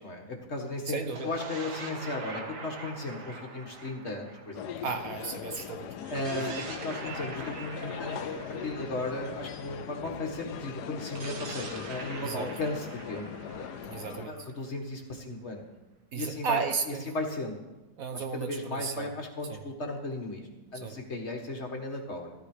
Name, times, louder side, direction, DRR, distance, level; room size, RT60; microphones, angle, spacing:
voice 1, 0.0-4.8 6.1-13.7 14.3-15.6 16.1-16.6 16.9-17.6 18.1-22.3, left 2 dB, 40° left, 2 dB, 1.9 m, -36 dB
voice 2, 0.9-1.3 4.8-5.9 12.2-12.5 13.8-14.5 16.1-17.1 18.0-19.1 19.5-19.6 20.8-20.9, right 6 dB, 60° right, 7 dB, 1.3 m, -34 dB
sound 1, 1.0-5.4 6.0-9.9 11.0-14.8, right 3 dB, 75° right, 2.0 m, -44 dB
sound 2, 4.5-14.3, left 8 dB, 80° left, 1.3 m, -40 dB
14.5 x 12.5 x 5.0 m, 1.1 s
omnidirectional pair, 1.8 m